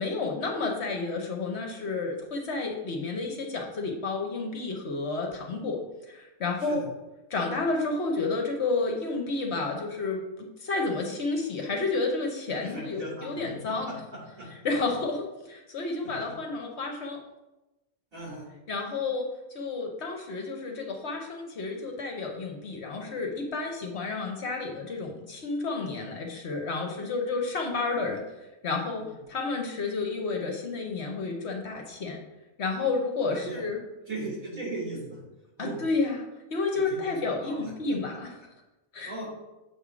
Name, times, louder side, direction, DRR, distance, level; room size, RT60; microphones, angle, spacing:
voice 1, 0.0-5.8 6.1-6.8 7.3-10.2 10.6-13.9 14.6-17.2 18.7-28.2 28.6-32.2 32.6-33.8 35.6-36.2 36.5-38.3 38.9-39.1, left 3 dB, 55° left, 2 dB, 1.0 m, -31 dB
voice 2, 12.5-13.4 13.9-14.5 18.1-18.5 29.0-29.1 33.3-33.6 34.1-35.2 35.6-35.8 36.7-37.7 39.1-39.2, right 2 dB, 75° right, -6 dB, 3.2 m, -38 dB
7.3 x 3.5 x 4.9 m, 1.0 s
omnidirectional pair, 1.5 m